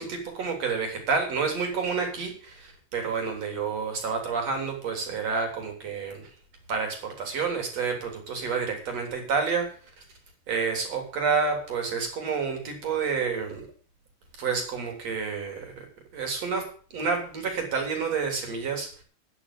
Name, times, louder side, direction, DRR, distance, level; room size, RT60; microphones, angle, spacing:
voice 1, 0.0-6.3 6.7-9.7 10.0-10.1 10.5-13.7 14.4-15.9 16.1-19.0, right 5 dB, 45° right, 4 dB, 4.2 m, -29 dB
10.0 x 9.6 x 8.3 m, 0.43 s
omnidirectional pair, 4.4 m